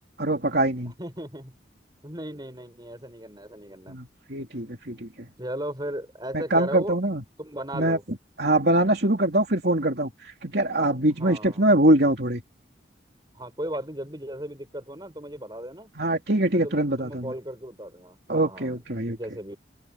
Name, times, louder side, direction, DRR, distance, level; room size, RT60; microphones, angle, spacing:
voice 1, 0.2-0.9 3.9-5.1 6.3-7.2 7.7-8.0 8.4-12.4 16.0-17.3 18.3-19.2, right 1 dB, 55° right, 3.2 m, -23 dB
voice 2, 0.8-1.5 2.0-4.0 5.4-7.0 7.4-8.0 11.2-11.7 13.3-15.9 16.5-18.8 19.0-19.6, right 1 dB, 20° right, 6.6 m, -36 dB
open air
head